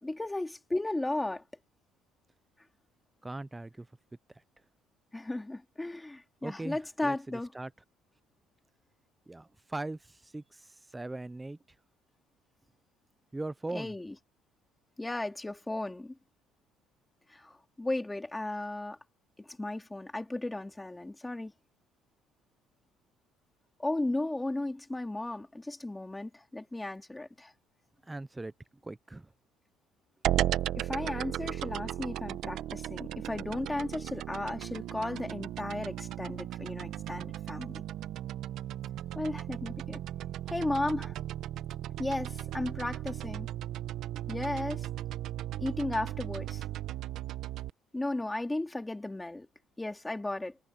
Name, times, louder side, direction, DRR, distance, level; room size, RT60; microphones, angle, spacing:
voice 1, 0.0-1.4 5.1-7.5 13.7-14.1 15.0-16.2 17.3-19.0 19.4-21.5 23.8-27.5 30.8-37.8 39.1-40.0 40.5-41.2 42.0-43.5 44.3-44.9 45.6-46.6 47.9-49.5 49.8-50.6, left 2 dB, 10° left, 2.7 m, -35 dB
voice 2, 3.2-3.9 6.4-7.2 7.5-7.7 9.3-11.6 13.3-13.9 28.1-28.5 28.8-29.3, right 2 dB, 10° right, 0.6 m, -39 dB
sound 1, 30.2-47.7, right 13 dB, 60° right, 1.0 m, -36 dB
cardioid pair, 140°, 0 cm